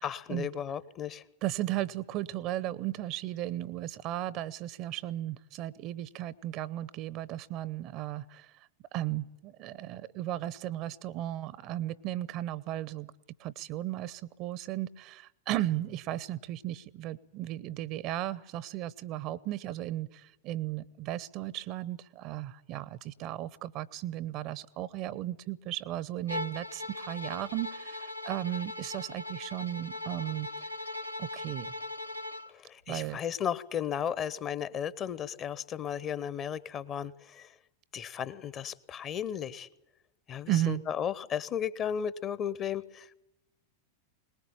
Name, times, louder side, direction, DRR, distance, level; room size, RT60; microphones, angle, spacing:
voice 1, 0.0-1.2 32.5-37.5 37.9-39.7 40.3-43.1, left 8 dB, 30° left, 18 dB, 0.9 m, -35 dB
voice 2, 1.4-8.5 8.9-13.1 13.4-30.5 31.2-31.7 32.9-33.2 40.5-40.8, right 14 dB, 40° right, 21 dB, 0.8 m, -35 dB
Bowed string instrument, 26.3-32.5, left 2 dB, 85° left, 0.8 m, -39 dB
22.0 x 19.5 x 8.8 m, 0.93 s
figure-of-eight pair, 90°, 0 cm